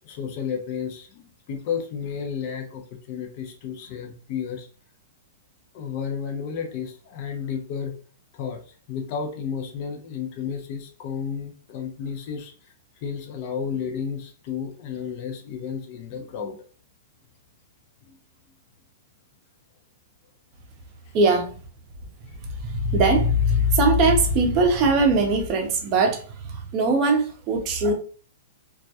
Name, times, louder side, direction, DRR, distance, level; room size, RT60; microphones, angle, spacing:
voice 1, 0.0-2.8 3.1-4.7 5.7-8.0 8.3-12.5 13.0-16.6 18.1-18.2 21.1-21.2 22.3-22.4, left 7 dB, 45° left, 3 dB, 0.5 m, -32 dB
voice 2, 21.1-21.6 22.6-27.9, right 2 dB, 35° right, 3 dB, 0.6 m, -20 dB
2.3 x 2.1 x 2.7 m, 0.41 s
hypercardioid pair, 145°, 0 cm